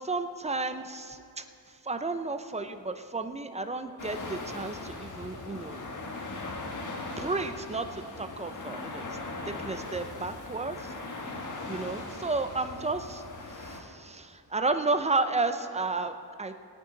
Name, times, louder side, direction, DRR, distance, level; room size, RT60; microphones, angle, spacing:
voice 1, 0.0-5.8 7.2-9.2 9.5-10.9 11.7-13.2 13.5-16.6, right 3 dB, 15° right, 9 dB, 0.6 m, -32 dB
sound 1, 4.0-13.8, left 2 dB, 50° left, 1.6 m, -39 dB
18.0 x 9.2 x 4.0 m, 2.4 s
cardioid pair, 90°, 40 cm